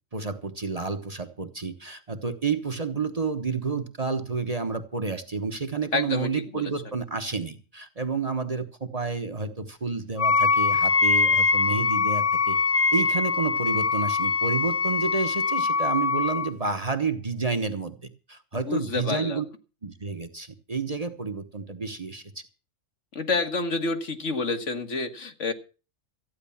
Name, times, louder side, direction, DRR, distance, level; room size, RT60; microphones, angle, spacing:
voice 1, 0.1-12.6 12.9-18.0 18.3-19.4 19.8-22.4, right 4 dB, 30° right, 8 dB, 1.2 m, -30 dB
voice 2, 5.9-6.3 6.5-6.6 18.5-19.4 23.1-25.5, left 3 dB, 65° left, 7 dB, 1.9 m, -28 dB
Wind instrument woodwind instrument, 10.2-16.5, left 4 dB, 45° left, 1.0 m, -23 dB
14.5 x 9.7 x 7.2 m, 0.36 s
omnidirectional pair, 1.3 m